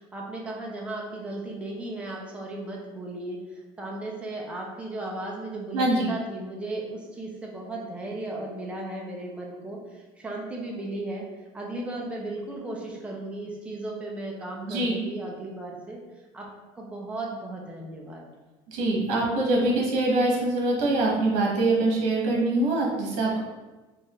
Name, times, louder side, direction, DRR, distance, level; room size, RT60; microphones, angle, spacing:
voice 1, 0.0-11.3 11.5-16.0 16.3-16.5 16.8-18.2, right 2 dB, 10° right, -2 dB, 0.6 m, -35 dB
voice 2, 5.7-6.1 14.7-15.0 18.7-23.4, right 2 dB, 65° right, -3 dB, 1.3 m, -24 dB
4.6 x 2.5 x 3.0 m, 1.2 s
cardioid pair, 165°, 12 cm